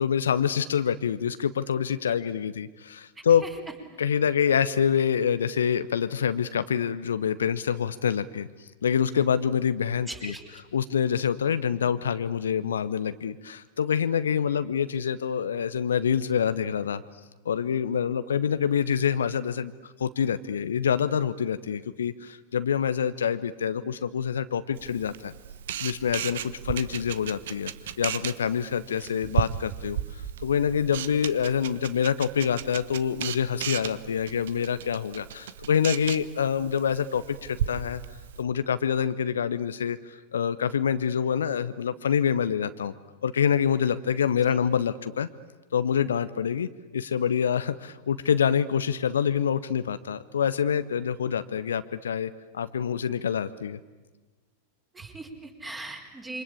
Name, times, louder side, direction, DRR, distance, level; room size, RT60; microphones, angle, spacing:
voice 1, 0.0-3.4 4.0-8.5 8.8-10.3 10.7-17.0 17.4-25.3 25.8-38.0 38.4-42.9 43.2-45.3 45.7-53.8, left 8 dB, 65° left, 13 dB, 0.9 m, -26 dB
voice 2, 3.2-3.5 10.1-10.6 44.5-44.6 54.9-56.4, right 2 dB, 10° right, 3 dB, 4.6 m, -40 dB
Camera, 24.8-38.4, right 10 dB, 60° right, 1.0 m, -35 dB
27.5 x 25.0 x 8.5 m, 1.3 s
figure-of-eight pair, 90°, 0 cm